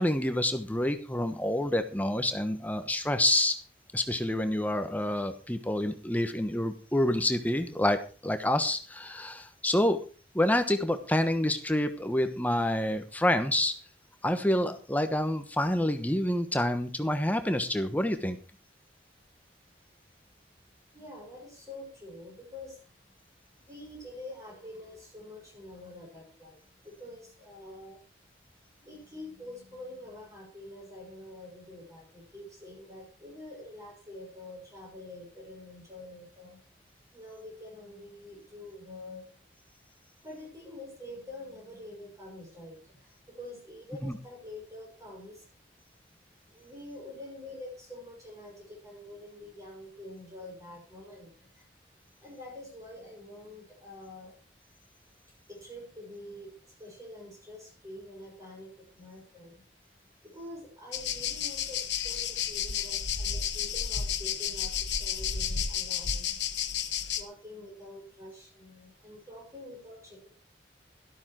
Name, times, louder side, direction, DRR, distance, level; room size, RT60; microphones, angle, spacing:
voice 1, 0.0-3.6 3.9-10.0 10.3-13.7 14.2-18.4 44.0-44.2, left 1 dB, 10° left, 8 dB, 1.1 m, -28 dB
voice 2, 20.9-22.8 23.6-28.0 28.8-36.6 37.1-39.3 40.2-45.4 46.5-51.7 52.2-54.3 55.5-59.6 60.2-66.4 67.1-70.3, left 1 dB, 20° right, -2 dB, 6.0 m, -46 dB
sound 1, 60.9-67.2, left 8 dB, 75° left, 1.4 m, -32 dB
12.5 x 12.5 x 4.5 m, 0.36 s
head